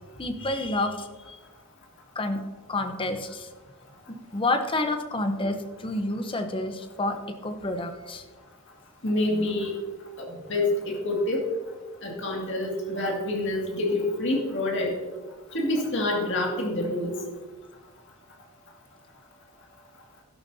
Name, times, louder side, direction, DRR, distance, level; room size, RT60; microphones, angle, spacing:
voice 1, 0.2-1.4 2.1-2.4 2.7-3.5 4.1-7.2 7.4-8.2, left 2 dB, 25° left, 7 dB, 0.8 m, -29 dB
voice 2, 9.0-9.7 10.2-11.5 12.0-14.9 15.5-17.1, left 1 dB, 55° left, -1 dB, 2.2 m, -27 dB
12.0 x 11.5 x 2.7 m, 1.3 s
head